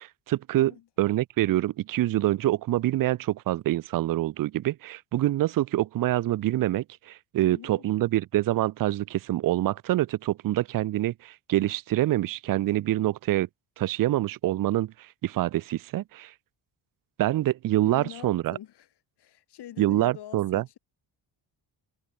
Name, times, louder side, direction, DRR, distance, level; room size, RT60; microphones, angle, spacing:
voice 1, 0.0-0.7 1.0-13.5 13.8-14.9 15.2-16.3 17.2-18.6 19.8-20.6, right 15 dB, 50° right, 0.5 m, -26 dB
voice 2, 0.5-0.9 7.4-7.8 17.8-18.9 19.2-20.8, left 12 dB, 60° left, 2.8 m, -44 dB
cardioid pair, 160°, 44 cm